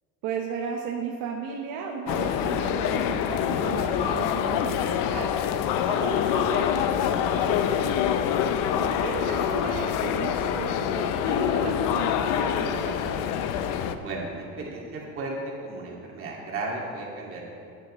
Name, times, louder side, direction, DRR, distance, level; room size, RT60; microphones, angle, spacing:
voice 1, 0.2-5.3 5.8-8.0 8.8-13.3, right 5 dB, 70° right, 0 dB, 1.1 m, -35 dB
sound 1, 2.1-13.9, left 9 dB, 70° left, 0.7 m, -25 dB
voice 2, 14.0-17.4, right 2 dB, 40° right, -2 dB, 2.2 m, -34 dB
16.0 x 10.0 x 3.1 m, 2.5 s
cardioid pair, 160°, 34 cm